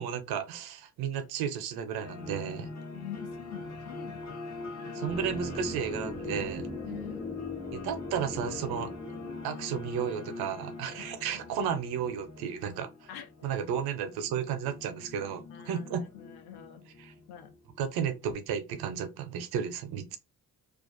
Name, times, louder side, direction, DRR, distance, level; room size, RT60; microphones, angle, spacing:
voice 1, 0.0-2.7 4.9-6.7 7.7-8.9 9.4-13.1 13.4-16.0 17.0-17.1 17.8-20.2, right 8 dB, 90° right, 0.5 m, -33 dB
sound 1, 2.0-18.4, left 3 dB, 45° left, 0.8 m, -43 dB
voice 2, 2.9-4.4 6.8-7.2 11.2-11.8 13.1-13.5 15.5-16.8 17.3-17.5, left 10 dB, 90° left, 0.5 m, -45 dB
sound 2, 5.0-11.1 11.3-11.4, left 2 dB, 5° right, 0.5 m, -41 dB
2.3 x 2.3 x 2.4 m
cardioid pair, 60°, 37 cm